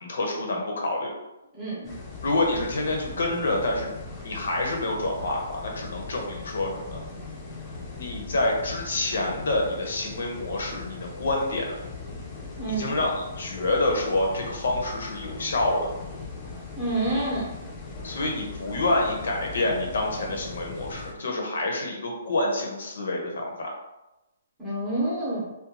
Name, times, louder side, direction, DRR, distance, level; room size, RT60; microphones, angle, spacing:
voice 1, 0.0-1.1 2.2-3.9 4.2-7.0 8.0-11.7 12.7-15.9 18.0-23.7, left 2 dB, 65° left, 0 dB, 0.7 m, -27 dB
voice 2, 1.5-1.9 12.6-12.9 16.7-17.5 24.6-25.5, right 2 dB, 10° right, -9 dB, 0.8 m, -28 dB
sound 1, 1.8-21.1, left 3 dB, 15° left, 0.4 m, -39 dB
2.5 x 2.2 x 2.8 m, 0.98 s
hypercardioid pair, 175°, 0 cm